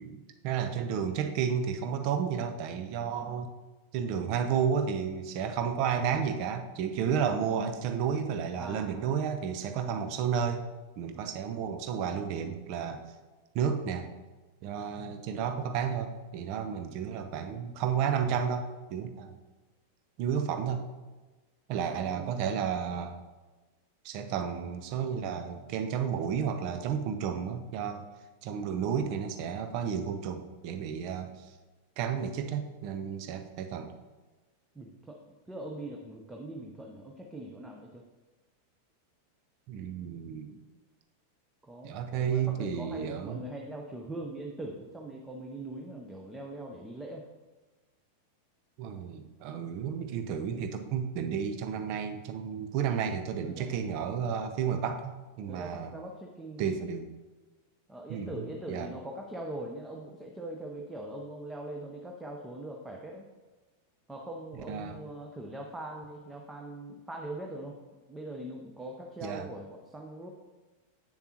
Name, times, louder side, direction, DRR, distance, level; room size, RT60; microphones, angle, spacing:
voice 1, 0.0-3.5 3.9-10.7 11.0-13.0 13.5-14.1 14.6-19.4 20.2-20.8 21.7-23.2 24.0-28.1 28.4-31.3 32.0-33.9 39.7-40.6 41.8-43.4 48.8-55.9 56.6-57.1 58.1-58.9 64.7-65.0 69.2-69.5, right 7 dB, 45° right, 7 dB, 0.7 m, -32 dB
voice 2, 3.1-3.4 8.6-9.1 21.9-22.3 34.7-38.0 41.6-47.2 53.4-53.8 55.5-56.7 57.9-63.2 64.1-67.8 68.1-70.3, right 1 dB, 10° right, 1 dB, 0.8 m, -42 dB
8.1 x 6.9 x 2.9 m, 1.2 s
figure-of-eight pair, 90°, 0 cm